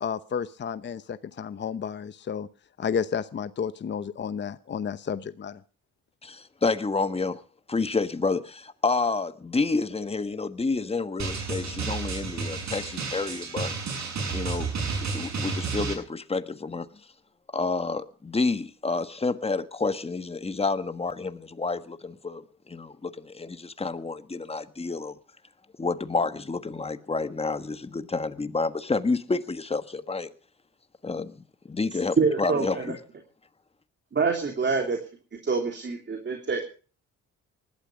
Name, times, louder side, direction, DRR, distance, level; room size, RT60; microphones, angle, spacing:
voice 1, 0.0-2.5 2.8-5.6, left 7 dB, 35° left, 13 dB, 0.8 m, -31 dB
voice 2, 6.2-7.4 7.7-13.7 14.3-14.7 15.0-16.9 17.5-25.2 25.8-30.3 31.0-33.0, left 3 dB, 20° left, 11 dB, 1.4 m, -29 dB
Drum, 11.2-15.9, right 5 dB, 65° right, 8.0 m, -31 dB
voice 3, 32.2-32.9 34.1-35.0 35.4-36.7, right 4 dB, 35° right, 4 dB, 3.1 m, -26 dB
19.5 x 12.5 x 5.2 m, 0.38 s
cardioid pair, 90°, 30 cm